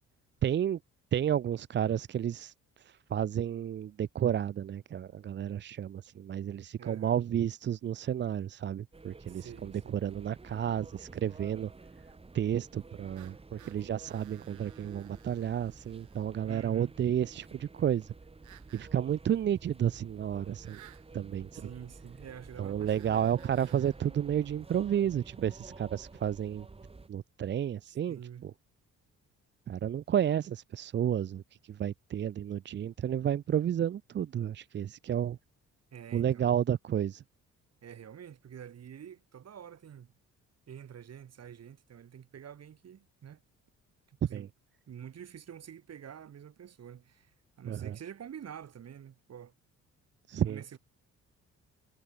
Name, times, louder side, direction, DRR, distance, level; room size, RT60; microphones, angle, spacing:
voice 1, 0.4-0.8 1.1-11.7 12.3-18.1 18.7-20.8 21.1-21.7 22.6-26.7 27.1-28.5 29.7-35.4 36.1-37.2 44.3-44.5 47.7-48.0 50.3-50.6, right 9 dB, 40° right, 0.5 m, -31 dB
voice 2, 6.8-7.2 9.3-10.0 16.5-16.9 21.6-23.4 28.1-28.5 35.9-36.5 37.8-40.1 40.7-43.4 44.1-44.5 44.9-49.5 50.3-50.8, right 9 dB, 55° right, 4.1 m, -47 dB
sound 1, 8.9-27.1, right 3 dB, 20° right, 1.7 m, -51 dB
sound 2, 13.1-16.3 18.4-18.9 20.6-21.1 22.9-24.0, right 14 dB, 75° right, 1.2 m, -58 dB
cardioid pair, 90°, 30 cm